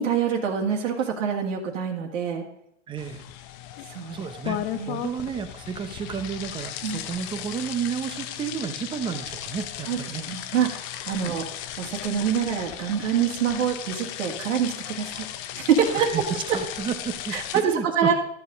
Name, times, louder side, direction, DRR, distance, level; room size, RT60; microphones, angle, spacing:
voice 1, 0.0-2.5 3.9-4.3 4.6-5.0 6.8-7.0 9.8-11.5 11.8-15.3 15.6-16.1 17.3-18.1, right 7 dB, 80° right, 0 dB, 2.1 m, -26 dB
voice 2, 2.9-3.2 4.1-4.6 4.9-10.2 11.2-11.4 16.0-16.3 16.5-17.4 17.7-18.1, right 7 dB, 15° right, 10 dB, 0.6 m, -32 dB
sound 1, 3.0-17.6, left 12 dB, 35° left, 0.7 m, -36 dB
13.0 x 6.4 x 5.1 m, 0.76 s
hypercardioid pair, 140°, 37 cm